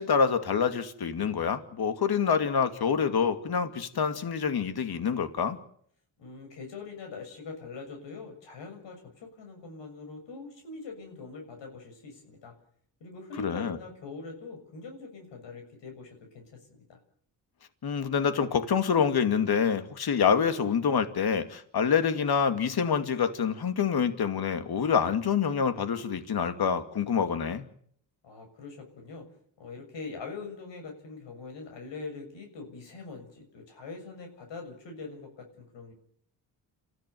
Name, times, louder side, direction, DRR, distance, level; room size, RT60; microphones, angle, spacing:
voice 1, 0.0-5.6 13.4-13.8 17.8-27.7, left 6 dB, 60° left, 9 dB, 2.4 m, -26 dB
voice 2, 6.2-12.5 13.0-17.0 28.2-29.3 29.6-35.9, left 4 dB, 80° left, 4 dB, 7.0 m, -43 dB
28.0 x 15.0 x 9.5 m, 0.64 s
cardioid pair, 75°, 43 cm